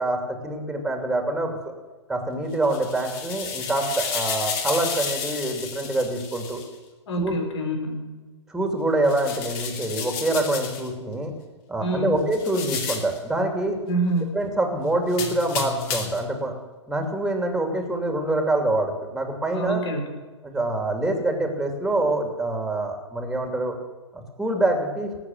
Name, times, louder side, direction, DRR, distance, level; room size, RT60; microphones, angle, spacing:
voice 1, 0.0-1.7 2.1-6.6 7.2-7.4 8.5-11.3 11.7-13.8 14.3-16.5 16.9-19.8 20.4-23.7 24.1-25.1, right 2 dB, ahead, 4 dB, 2.8 m, -25 dB
sound 1, 2.5-6.7 9.0-10.9 12.3-13.2 15.1-16.3, left 6 dB, 40° left, 2.8 m, -32 dB
voice 2, 7.1-8.1 11.8-12.2 13.9-14.4 19.5-20.1, right 1 dB, 65° left, 3 dB, 4.3 m, -26 dB
18.5 x 8.1 x 7.7 m, 1.3 s
hypercardioid pair, 120°, 15 cm